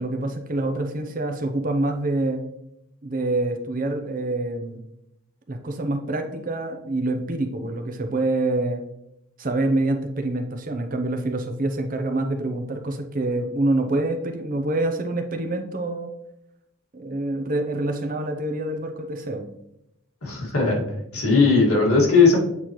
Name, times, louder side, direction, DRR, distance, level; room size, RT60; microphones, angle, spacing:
voice 1, 0.0-2.4 3.0-4.8 5.5-8.8 9.4-16.1 16.9-19.5, right 2 dB, 40° right, 4 dB, 0.7 m, -26 dB
voice 2, 20.2-20.8 21.1-22.4, left 4 dB, 85° left, -2 dB, 2.0 m, -18 dB
8.2 x 4.3 x 3.0 m, 0.81 s
head